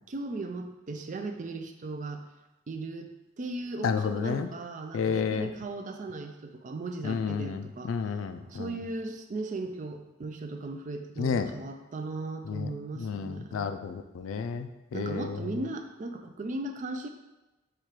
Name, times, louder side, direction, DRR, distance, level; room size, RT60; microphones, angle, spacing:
voice 1, 0.1-2.2 2.7-3.1 3.4-7.9 8.4-13.7 14.9-17.1, right 2 dB, 40° right, 6 dB, 0.4 m, -37 dB
voice 2, 3.8-4.5 4.9-5.5 7.0-8.7 11.2-11.5 12.5-12.7 13.0-15.4, left 6 dB, 75° left, 9 dB, 0.3 m, -31 dB
4.3 x 2.5 x 4.7 m, 1.0 s
head